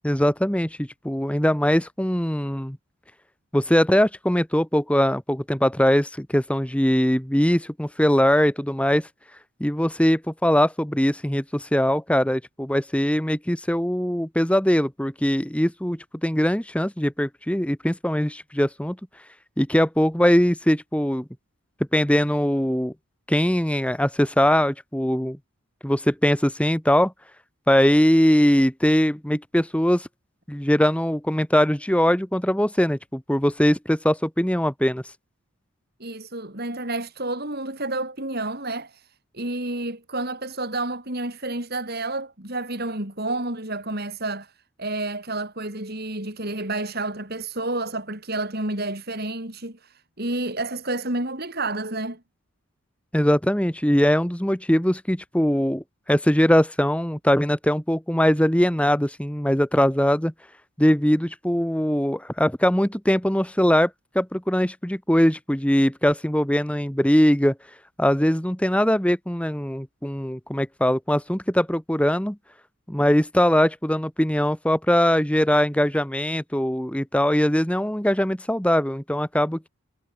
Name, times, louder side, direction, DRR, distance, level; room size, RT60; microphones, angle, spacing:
voice 1, 0.0-2.8 3.5-9.1 9.6-19.0 19.6-21.2 21.9-22.9 23.3-25.4 25.8-27.1 27.7-30.1 30.5-35.0 53.1-60.3 60.8-63.9 64.1-67.5 68.0-72.4 72.9-79.7, equal, 5° left, 1.2 m, -21 dB
voice 2, 36.0-44.5 44.8-52.2, right 2 dB, 45° right, 4.6 m, -30 dB
head